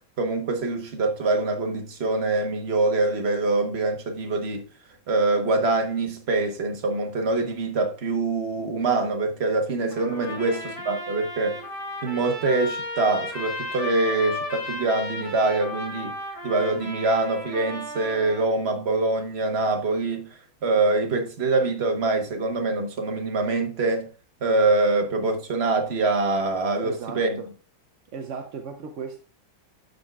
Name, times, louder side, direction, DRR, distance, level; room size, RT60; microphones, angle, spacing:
voice 1, 0.2-4.6 5.1-11.6 12.0-16.1 16.4-20.3 20.6-24.1 24.4-27.4, right 3 dB, 40° right, 1.2 m, -24 dB
Trumpet, 9.9-18.5, left 2 dB, 30° left, 2.5 m, -34 dB
voice 2, 26.8-27.5 28.1-29.2, right 6 dB, 60° right, 0.8 m, -36 dB
13.5 x 5.2 x 2.3 m
omnidirectional pair, 1.9 m